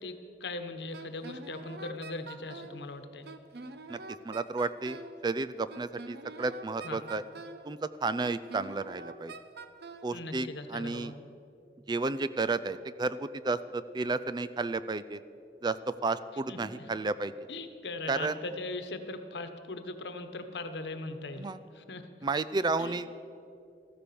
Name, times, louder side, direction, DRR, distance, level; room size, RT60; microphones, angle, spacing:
voice 1, 0.0-3.3 6.8-7.0 10.1-11.2 16.5-16.9 17.5-22.3 22.8-22.9, left 2 dB, 70° left, 8 dB, 1.2 m, -40 dB
Wind instrument woodwind instrument, 0.9-2.8 3.3-5.2 5.7-7.7 8.2-10.1, right 3 dB, 65° right, 0.9 m, -45 dB
voice 2, 4.2-5.0 5.2-7.2 7.6-9.3 10.0-11.1 11.9-15.2 15.6-17.3 18.1-18.3 21.4-21.6 22.2-23.1, right 3 dB, 25° right, 14 dB, 0.4 m, -32 dB
14.5 x 14.0 x 6.9 m, 2.6 s
head